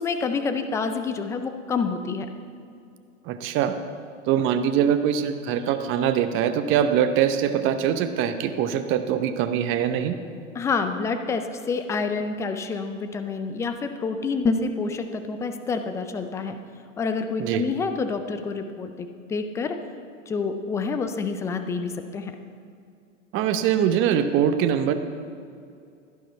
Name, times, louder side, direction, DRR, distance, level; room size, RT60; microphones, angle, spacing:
voice 1, 0.0-2.3 10.5-16.6 17.0-19.8 20.3-22.4, left 4 dB, 10° left, 8 dB, 0.3 m, -28 dB
voice 2, 3.3-3.8 4.3-10.2 17.4-17.6 23.3-24.9, right 9 dB, 30° right, 9 dB, 0.8 m, -23 dB
12.0 x 11.5 x 4.5 m, 2.4 s
hypercardioid pair, 110°, 39 cm